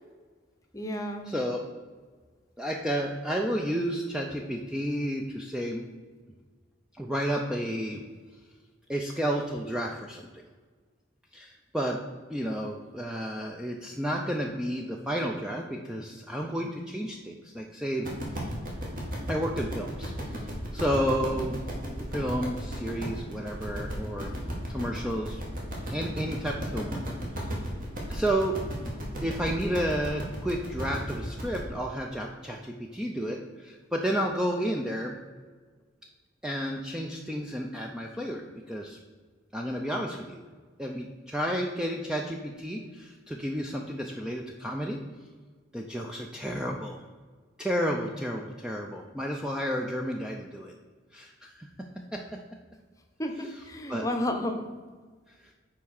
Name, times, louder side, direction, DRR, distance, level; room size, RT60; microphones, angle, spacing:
voice 1, 0.7-1.3 53.2-54.7, left 1 dB, 15° left, 5 dB, 0.8 m, -32 dB
voice 2, 1.3-1.6 2.6-5.8 7.0-8.0 8.9-10.3 11.3-12.0 12.3-18.1 18.3-18.5 19.3-21.6 21.9-24.4 24.6-25.4 25.9-27.0 27.4-27.5 28.1-28.6 29.2-35.2 36.4-39.0 39.5-40.4 40.8-45.0 45.7-47.0 47.6-50.7 51.1-52.4 53.9-54.0, equal, 5° right, 0 dB, 0.4 m, -31 dB
sound 1, 18.0-31.6, equal, 45° right, 1.9 m, -35 dB
5.9 x 4.5 x 6.4 m, 1.5 s
head